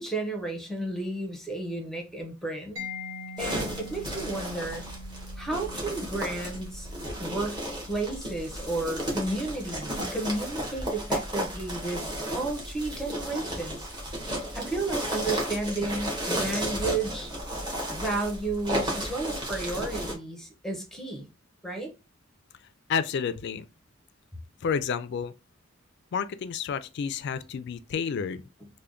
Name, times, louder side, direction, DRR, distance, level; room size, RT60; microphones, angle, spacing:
voice 1, 0.0-2.8 3.4-4.8 5.4-6.9 7.2-13.9 14.5-17.3 17.9-21.3 21.6-21.9 28.6-28.7, right 2 dB, ahead, 0.7 m, -32 dB
Mallet percussion, 2.8-10.3, left 2 dB, 80° right, 0.9 m, -45 dB
sound 1, 3.4-20.1, equal, 20° right, 1.2 m, -33 dB
voice 2, 22.9-23.7 24.6-25.3 26.1-28.4, left 6 dB, 55° left, 0.3 m, -30 dB
3.3 x 2.2 x 3.6 m
head